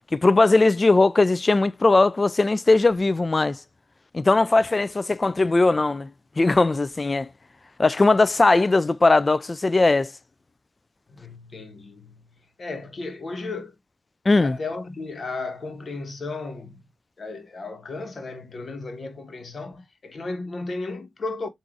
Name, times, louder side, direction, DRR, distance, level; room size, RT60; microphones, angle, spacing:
voice 1, 0.1-3.6 4.1-6.1 6.4-7.3 7.8-10.1 14.3-14.6, left 3 dB, 35° left, 0.4 m, -19 dB
voice 2, 11.1-13.7 14.4-16.8 17.2-21.5, left 3 dB, 50° left, 1.2 m, -34 dB
3.8 x 2.6 x 4.7 m
supercardioid pair, 50°, 0 cm